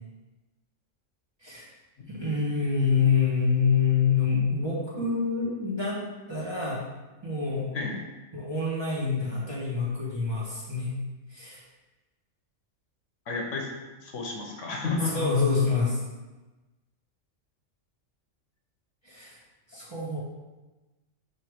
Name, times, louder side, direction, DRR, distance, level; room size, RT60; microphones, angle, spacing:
voice 1, 2.1-6.0 6.3-6.8 7.2-7.7 8.3-10.9 11.3-11.6 15.0-16.0 19.0-19.4 19.7-20.2, left 5 dB, 20° right, -7 dB, 1.6 m, -26 dB
voice 2, 13.3-13.7 14.0-15.3, left 4 dB, 70° left, 0 dB, 1.2 m, -31 dB
4.8 x 4.4 x 5.0 m, 1.1 s
omnidirectional pair, 1.3 m